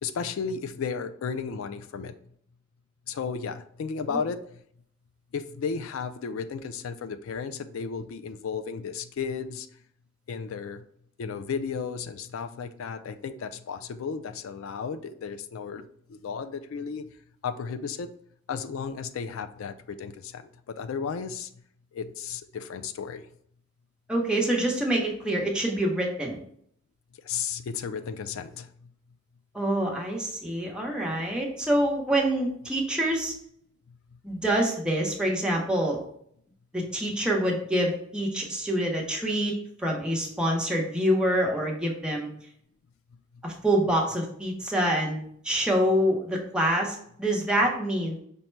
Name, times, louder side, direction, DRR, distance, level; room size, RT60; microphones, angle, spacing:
voice 1, 0.0-2.1 3.1-4.4 5.3-9.7 10.3-10.8 11.2-17.0 17.4-18.1 18.5-20.5 20.8-21.5 21.9-23.2 27.3-28.7, left 6 dB, 85° left, 9 dB, 0.4 m, -34 dB
voice 2, 24.1-26.4 29.5-33.3 34.2-36.0 36.7-39.5 39.8-42.3 43.4-48.2, right 1 dB, 5° right, -2 dB, 0.8 m, -26 dB
5.3 x 2.1 x 4.4 m, 0.66 s
head